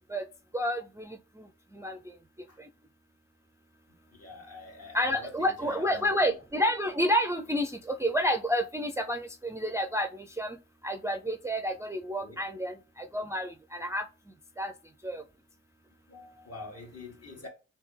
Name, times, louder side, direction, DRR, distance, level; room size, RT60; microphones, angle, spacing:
voice 1, 4.1-6.3 12.2-12.4 16.1-17.5, left 2 dB, 50° left, 1.7 m, -46 dB
voice 2, 4.9-10.1 10.4-10.6 10.8-12.7 13.1-14.0 14.6-14.7 15.0-15.2, equal, 10° right, 0.4 m, -29 dB
3.3 x 2.8 x 3.3 m
cardioid pair, 55°, 30 cm